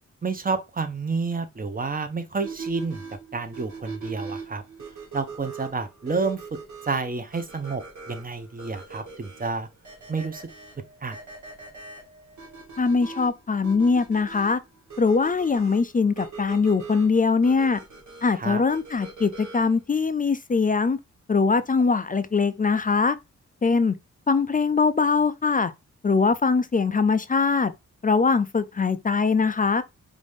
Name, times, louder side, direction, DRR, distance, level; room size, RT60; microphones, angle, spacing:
voice 1, 0.2-3.0 3.3-4.6 5.1-6.4 6.8-9.7 10.1-10.5 11.0-11.2 18.3-18.6, right 4 dB, 30° right, 0.9 m, -29 dB
sound 1, 2.4-19.8, right 4 dB, 70° right, 2.0 m, -41 dB
voice 2, 12.8-14.6 15.0-17.8 18.2-21.0 21.3-23.2 23.6-23.9 24.3-25.7 26.0-27.7 28.0-29.8, left 4 dB, 30° left, 0.5 m, -22 dB
5.1 x 2.7 x 3.5 m
cardioid pair, 80°, 30 cm